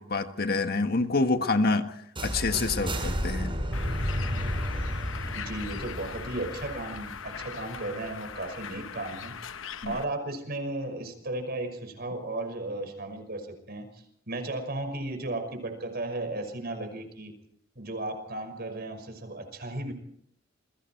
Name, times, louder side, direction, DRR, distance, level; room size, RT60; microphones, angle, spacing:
voice 1, 0.0-1.9 2.2-3.5 9.8-9.9, left 3 dB, 55° left, 7 dB, 1.6 m, -27 dB
sound 1, 2.2-8.0, equal, 25° right, 7.1 m, -32 dB
Bird, 3.7-10.0, left 7 dB, 80° left, 0.9 m, -40 dB
voice 2, 5.1-9.6 9.8-17.3 17.8-19.9, right 2 dB, 55° right, 7 dB, 5.9 m, -35 dB
29.0 x 22.5 x 4.6 m, 0.68 s
head